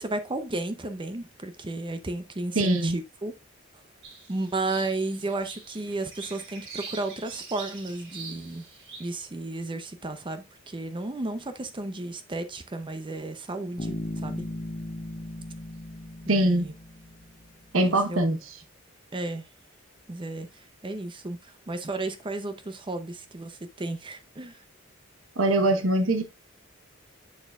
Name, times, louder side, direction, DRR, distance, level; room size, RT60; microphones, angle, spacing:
voice 1, 0.0-3.3 4.3-8.6 9.0-14.0 14.2-14.5 16.3-16.7 17.8-18.2 19.1-19.4 20.1-20.5 20.8-21.4 21.7-24.5, right 2 dB, 25° right, 0.6 m, -33 dB
voice 2, 2.5-3.0 16.3-16.7 17.7-18.6 25.4-26.2, right 1 dB, 80° right, 1.0 m, -23 dB
sound 1, 4.0-9.1, right 4 dB, 60° right, 2.8 m, -44 dB
Bass guitar, 13.8-17.5, left 1 dB, 35° left, 0.7 m, -37 dB
7.2 x 6.6 x 2.4 m
head